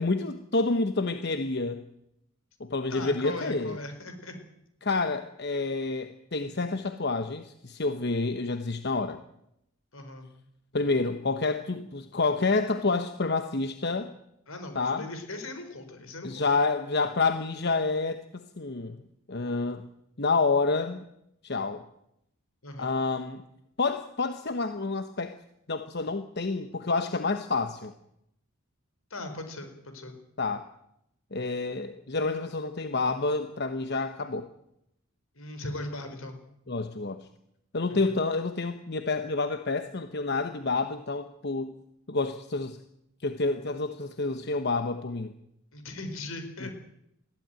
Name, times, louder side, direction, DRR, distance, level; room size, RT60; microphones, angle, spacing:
voice 1, 0.0-1.8 2.6-3.8 4.8-9.2 10.7-14.1 14.7-15.1 16.2-19.0 19.3-19.8 20.2-21.0 21.4-21.8 22.8-23.4 23.8-25.4 25.7-27.9 30.4-30.6 31.3-34.5 36.7-37.3 37.7-41.8 42.1-42.8 43.2-45.3 46.6-46.7, left 3 dB, 50° left, 9 dB, 1.0 m, -28 dB
voice 2, 2.9-4.3 9.9-10.3 14.5-16.4 22.6-22.9 29.1-30.1 35.3-36.4 37.9-38.1 45.7-46.7, left 2 dB, 75° left, 8 dB, 4.6 m, -39 dB
21.5 x 15.5 x 9.1 m, 0.80 s
head